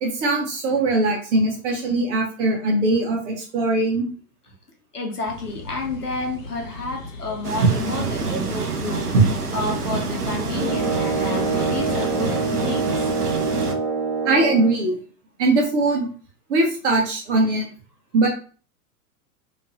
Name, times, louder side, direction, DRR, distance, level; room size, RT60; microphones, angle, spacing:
voice 1, 0.0-4.1 8.3-8.4 9.1-9.2 14.2-14.9 15.4-16.1 16.5-17.7 18.1-18.3, right 2 dB, 50° right, 0 dB, 1.3 m, -20 dB
voice 2, 4.9-9.1 9.5-12.9, left 3 dB, 85° left, 2 dB, 0.9 m, -30 dB
sound 1, 5.3-12.0, left 2 dB, 60° left, 0.9 m, -38 dB
sound 2, 7.4-13.7, right 4 dB, 85° right, 0.6 m, -27 dB
sound 3, 10.5-14.8, right 3 dB, 10° left, 0.5 m, -25 dB
2.9 x 2.8 x 2.9 m, 0.39 s
figure-of-eight pair, 95°, 45 cm